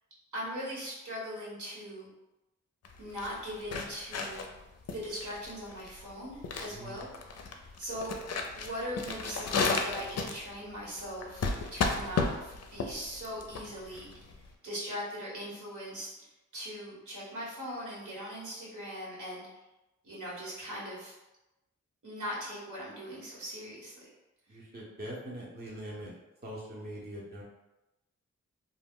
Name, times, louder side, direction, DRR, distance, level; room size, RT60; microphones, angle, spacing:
voice 1, 0.3-2.1 3.0-4.5 4.9-8.1 8.5-14.1 14.6-16.1 16.5-19.5 20.0-21.1 22.0-24.1, equal, 70° right, -6 dB, 1.2 m, -40 dB
sound 1, 2.8-14.5, left 4 dB, 55° left, 0.4 m, -34 dB
voice 2, 6.7-7.0 24.5-26.1 26.4-27.4, right 1 dB, 30° right, -5 dB, 0.7 m, -42 dB
2.2 x 2.0 x 3.5 m, 0.99 s
cardioid pair, 60°, 31 cm